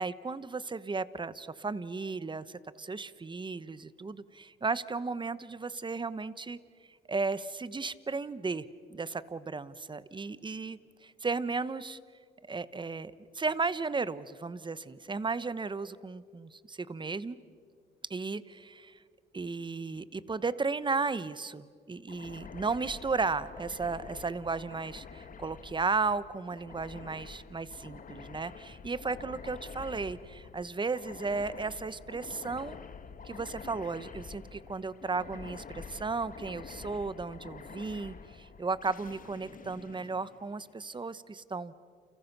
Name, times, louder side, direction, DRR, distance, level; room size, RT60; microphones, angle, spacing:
voice 1, 0.0-6.6 7.1-12.0 12.5-17.4 18.1-19.0 19.3-32.8 33.2-41.7, right 4 dB, 25° right, 16 dB, 1.0 m, -35 dB
sound 1, 22.1-40.9, left 5 dB, 45° left, 1.6 m, -48 dB
29.5 x 29.5 x 6.0 m, 2.1 s
cardioid pair, 90°, 20 cm